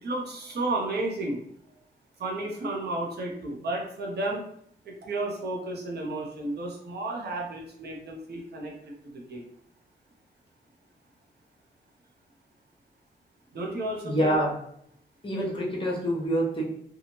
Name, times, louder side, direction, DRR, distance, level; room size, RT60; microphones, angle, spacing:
voice 1, 0.0-1.4 2.2-4.4 4.8-9.5 13.5-14.4, right 2 dB, 65° right, -1 dB, 0.8 m, -32 dB
voice 2, 14.0-14.5 15.2-16.6, right 1 dB, 30° left, -3 dB, 0.9 m, -26 dB
2.8 x 2.3 x 2.9 m, 0.69 s
cardioid pair, 80°, 18 cm